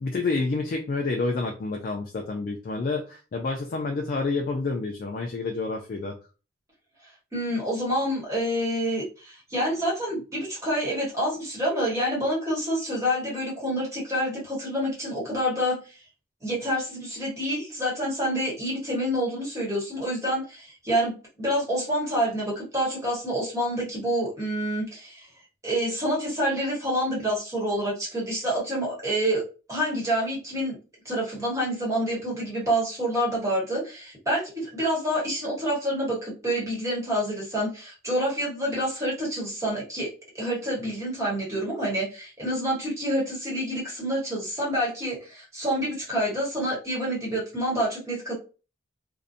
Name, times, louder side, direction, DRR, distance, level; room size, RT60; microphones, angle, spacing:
voice 1, 0.0-6.2, left 3 dB, 45° left, 2 dB, 0.3 m, -28 dB
voice 2, 7.3-15.8 16.4-25.3 25.6-29.4 29.7-30.8 31.0-40.1 40.3-48.3, equal, 15° right, -4 dB, 1.1 m, -27 dB
2.5 x 2.1 x 2.5 m, 0.33 s
head